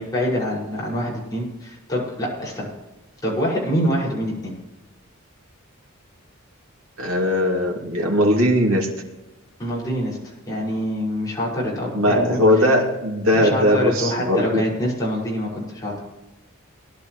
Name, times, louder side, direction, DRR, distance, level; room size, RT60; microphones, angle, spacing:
voice 1, 0.0-2.7 3.2-4.5 9.6-10.2 10.5-12.4 13.3-15.9, equal, 15° left, -6 dB, 5.9 m, -25 dB
voice 2, 7.0-8.9 11.9-14.6, equal, 80° right, 0 dB, 2.7 m, -19 dB
19.5 x 11.5 x 3.2 m, 1.1 s
head